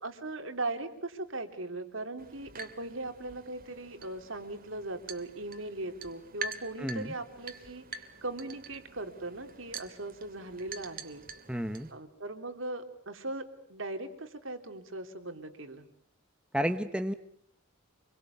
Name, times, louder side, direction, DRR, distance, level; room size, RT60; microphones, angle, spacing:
voice 1, 0.0-11.2 11.9-15.8, right 2 dB, 65° right, 7 dB, 3.3 m, -39 dB
sound 1, 2.2-11.9, right 4 dB, 45° right, 2.4 m, -46 dB
voice 2, 6.8-7.1 11.5-11.9 16.5-17.1, equal, 5° right, 9 dB, 1.0 m, -31 dB
27.5 x 22.5 x 8.3 m, 0.67 s
head